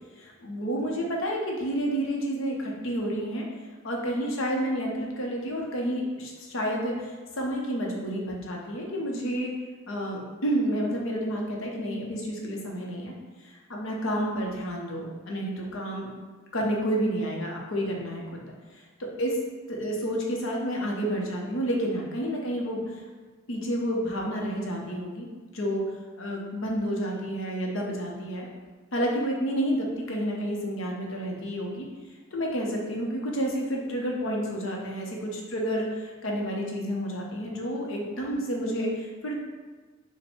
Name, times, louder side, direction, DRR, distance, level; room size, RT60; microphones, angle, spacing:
voice 1, 0.2-3.5 3.8-9.5 9.9-13.1 13.7-16.1 16.5-18.4 18.7-19.4 19.7-23.0 23.5-25.3 25.5-25.8 26.2-28.5 28.9-31.9 32.3-39.4, equal, 70° left, -1 dB, 0.7 m, -30 dB
4.3 x 2.2 x 4.2 m, 1.4 s
head